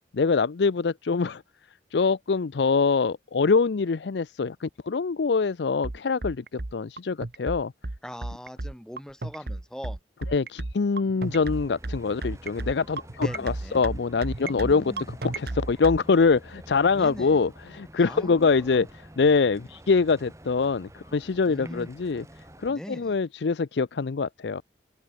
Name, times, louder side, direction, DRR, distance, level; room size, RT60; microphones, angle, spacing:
voice 1, 0.1-1.4 1.9-7.7 10.3-14.9 15.2-18.9 19.2-22.2 22.6-24.6, left 4 dB, 75° left, 0.5 m, -24 dB
sound 1, 5.8-16.0, right 2 dB, 55° right, 1.1 m, -33 dB
voice 2, 8.0-10.0 11.0-11.4 13.2-13.8 14.4-15.1 16.9-17.4 18.0-18.9 21.4-21.9 22.7-23.2, equal, 5° left, 1.4 m, -41 dB
sound 2, 11.2-22.7, right 1 dB, 15° right, 1.8 m, -49 dB
open air
head